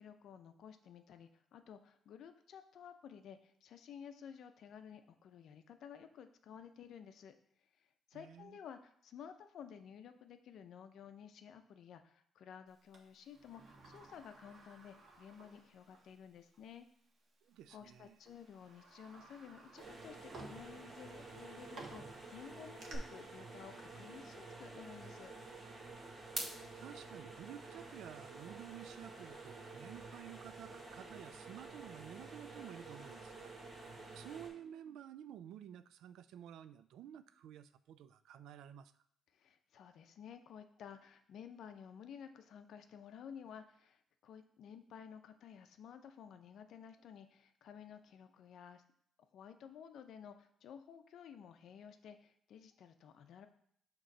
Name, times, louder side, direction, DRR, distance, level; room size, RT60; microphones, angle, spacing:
voice 1, 0.0-7.3 8.1-16.9 17.7-25.3 39.3-48.8 49.3-53.5, left 8 dB, 70° left, 8 dB, 0.6 m, -54 dB
voice 2, 8.1-8.6 17.4-18.2 26.8-33.5 34.1-38.9, right 10 dB, 85° right, 13 dB, 0.3 m, -52 dB
Sliding door, 12.9-16.2 16.5-16.6 17.6-17.8 18.2-23.0, right 3 dB, 55° right, 1.2 m, -56 dB
sound 1, 19.8-34.5, right 3 dB, 40° right, 2.0 m, -50 dB
6.3 x 3.0 x 5.4 m, 0.67 s
cardioid pair, 90°, 0 cm